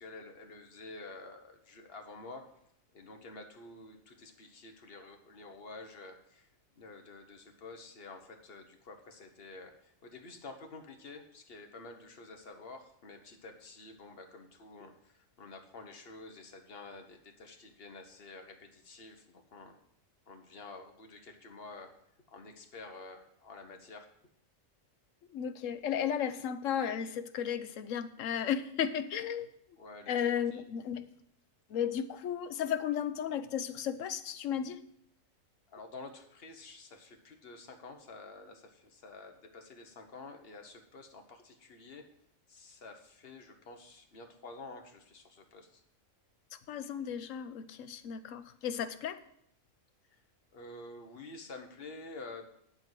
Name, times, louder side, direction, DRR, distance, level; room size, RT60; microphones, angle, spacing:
voice 1, 0.0-2.5 2.9-6.5 6.7-19.8 20.3-21.9 22.3-24.1 29.8-30.6 35.7-42.1 42.5-45.8 50.1-50.2 50.5-52.4, left 3 dB, 50° left, 4 dB, 1.4 m, -49 dB
voice 2, 25.3-29.5 30.1-31.0 31.7-34.8 46.7-49.2, left 8 dB, 75° left, 11 dB, 1.1 m, -34 dB
10.5 x 4.7 x 7.6 m, 0.72 s
omnidirectional pair, 1.4 m